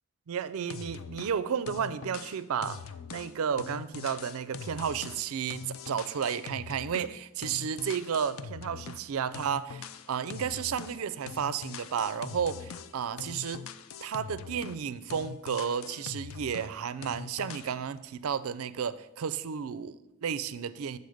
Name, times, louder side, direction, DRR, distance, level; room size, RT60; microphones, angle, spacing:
voice 1, 0.3-2.8 3.1-13.6 14.0-21.0, right 7 dB, 70° right, 0.4 m, -32 dB
sound 1, 0.7-1.4 1.7-7.2 7.4-9.1 9.3-11.0 11.3-14.9 15.1-16.7 17.0-17.8, left 6 dB, 65° left, 0.4 m, -43 dB
8.4 x 4.1 x 6.4 m
head